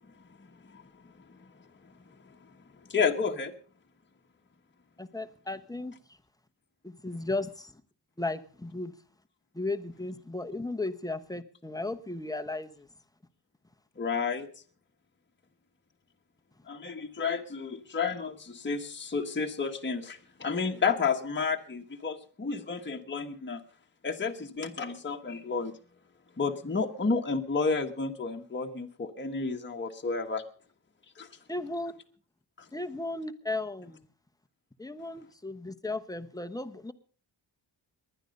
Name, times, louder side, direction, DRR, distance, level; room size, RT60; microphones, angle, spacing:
voice 1, 2.9-3.5 14.0-14.5 16.7-23.6 24.0-25.7 26.4-30.4 31.2-31.3, left 5 dB, 25° left, 3 dB, 1.3 m, -31 dB
voice 2, 5.0-5.9 6.8-7.8 8.2-8.9 9.5-12.9 31.5-31.9 32.7-34.1 34.8-36.9, left 2 dB, 10° left, 9 dB, 1.0 m, -35 dB
20.0 x 11.5 x 5.3 m, 0.43 s
wide cardioid pair, 125°, 45 cm